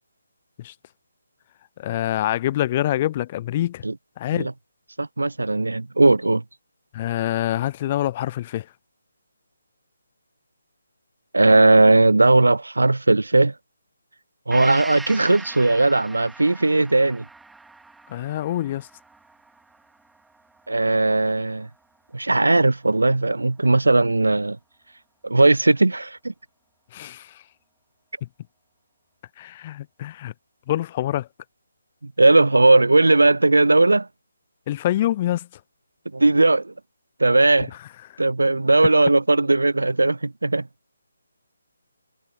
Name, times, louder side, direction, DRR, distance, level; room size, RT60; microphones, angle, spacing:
voice 1, 1.8-3.8 4.2-4.5 6.9-8.7 18.1-18.9 26.9-27.4 28.2-28.3 29.4-30.3 30.7-31.3 34.7-35.5 38.1-38.2, left 13 dB, 25° left, 0.4 m, -25 dB
voice 2, 5.0-6.4 11.3-13.5 14.5-17.2 20.7-21.7 22.1-24.6 25.2-26.3 32.0-34.1 36.1-36.7 37.2-37.7 38.2-40.6, right 2 dB, 70° right, 0.3 m, -18 dB
Gong, 14.5-22.1 22.5-22.6, right 3 dB, 5° right, 3.6 m, -42 dB
figure-of-eight pair, 145°, 0 cm